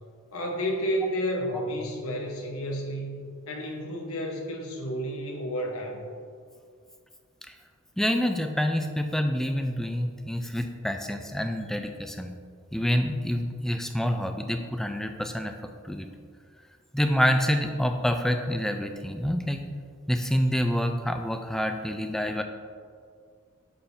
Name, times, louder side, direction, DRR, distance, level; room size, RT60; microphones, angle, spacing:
voice 1, 0.3-3.2 3.5-6.0, equal, 75° left, 1 dB, 1.1 m, -31 dB
voice 2, 8.0-12.3 12.7-15.5 15.8-16.1 16.9-19.6 20.1-22.4, equal, ahead, 6 dB, 0.3 m, -27 dB
8.7 x 7.2 x 2.7 m, 2.2 s
head